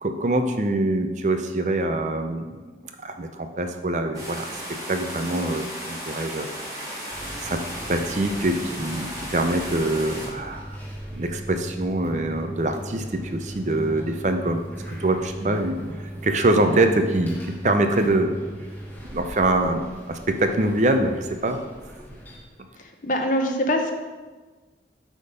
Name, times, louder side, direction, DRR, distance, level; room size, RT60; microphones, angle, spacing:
voice 1, 0.0-2.6 3.0-4.5 4.9-6.5 6.8-7.6 7.9-10.8 11.1-14.6 14.9-18.3 19.1-19.8 20.1-21.6, right 2 dB, 40° right, 6 dB, 0.5 m, -24 dB
sound 1, 4.1-10.3, equal, 20° right, 1.8 m, -35 dB
sound 2, 7.1-22.4, equal, 10° left, 1.4 m, -39 dB
voice 2, 22.8-23.9, equal, 45° left, 3 dB, 0.7 m, -24 dB
8.0 x 3.6 x 5.2 m, 1.3 s
head